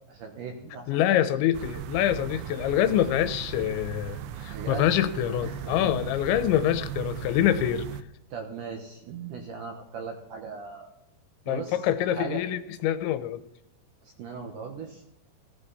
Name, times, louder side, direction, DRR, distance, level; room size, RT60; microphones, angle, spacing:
voice 1, 0.1-1.3 4.5-5.0 5.4-5.9 8.3-10.9 11.5-11.8 12.1-12.4 14.2-15.0, right 5 dB, 65° right, 3 dB, 2.2 m, -38 dB
voice 2, 0.9-7.9 11.5-13.4, left 11 dB, 80° left, 12 dB, 3.0 m, -25 dB
sound 1, 1.5-8.0, right 10 dB, 80° right, 3.0 m, -37 dB
18.0 x 14.0 x 4.2 m, 0.74 s
omnidirectional pair, 5.3 m